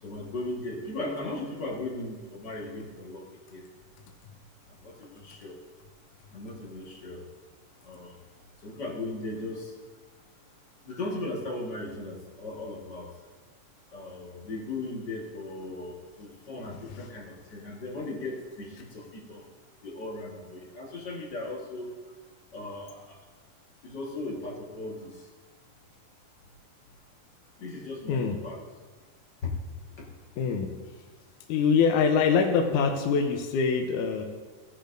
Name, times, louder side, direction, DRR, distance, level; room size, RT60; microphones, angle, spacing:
voice 1, 0.0-3.2 3.5-3.6 4.7-5.6 6.3-7.3 7.8-8.2 8.6-9.7 10.8-13.1 13.9-19.5 19.8-21.9 22.5-23.2 23.8-25.3 27.6-28.6 29.4-29.5 30.0-30.1, left 2 dB, 40° left, -3 dB, 1.7 m, -37 dB
voice 2, 16.7-17.1 28.1-28.4 30.4-30.7 31.5-34.2, left 5 dB, 75° left, 3 dB, 2.2 m, -24 dB
15.5 x 10.5 x 2.6 m, 1.4 s
omnidirectional pair, 3.7 m